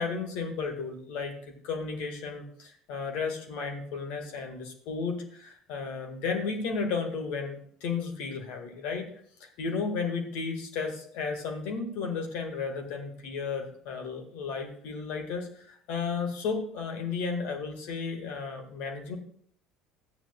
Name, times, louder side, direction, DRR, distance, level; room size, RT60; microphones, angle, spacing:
voice 1, 0.0-1.3 1.6-9.1 9.4-19.2, left 5 dB, 65° left, 3 dB, 1.8 m, -33 dB
13.5 x 9.0 x 2.3 m, 0.62 s
hypercardioid pair, 65°, 2 cm